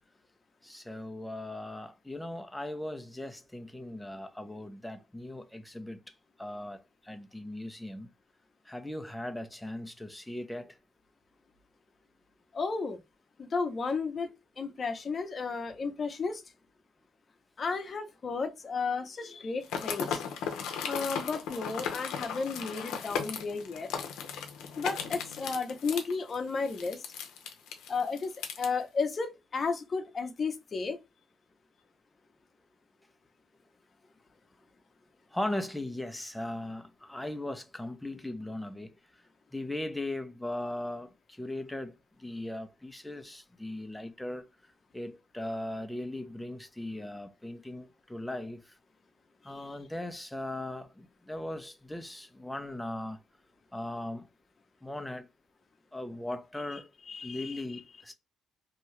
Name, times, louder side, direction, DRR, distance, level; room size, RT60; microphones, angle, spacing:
voice 1, 0.6-6.0 6.4-8.1 8.7-10.8 35.3-38.9 39.5-41.1 41.4-41.9 42.2-44.4 44.9-48.6 49.4-53.2 53.7-54.3 54.8-55.3 55.9-56.9 57.2-58.1, left 1 dB, 5° left, 0.5 m, -38 dB
voice 2, 12.5-13.0 13.4-14.3 14.6-16.4 17.6-20.2 20.9-23.9 24.8-27.0 27.9-31.0 57.1-57.6, left 4 dB, 40° left, 0.7 m, -33 dB
sound 1, 19.6-28.7, left 7 dB, 90° left, 0.6 m, -36 dB
2.7 x 2.3 x 3.1 m
cardioid pair, 90°, 0 cm